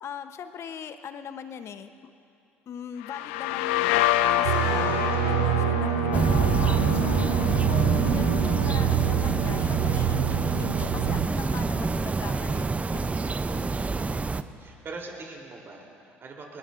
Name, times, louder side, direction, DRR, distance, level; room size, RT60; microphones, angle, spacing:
voice 1, 0.0-1.9 2.7-13.2 13.5-13.9, left 7 dB, 50° left, 10 dB, 0.9 m, -40 dB
sound 1, 3.0-10.6, left 13 dB, 75° left, 0.4 m, -29 dB
sound 2, 4.4-11.3, right 17 dB, 75° right, 0.5 m, -26 dB
voice 2, 4.6-5.2 13.3-14.0 14.6-16.6, right 3 dB, 40° right, 0 dB, 3.4 m, -43 dB
sound 3, 6.1-14.4, right 4 dB, 25° right, 0.6 m, -26 dB
21.5 x 20.5 x 2.6 m, 2.5 s
hypercardioid pair, 60°, 6 cm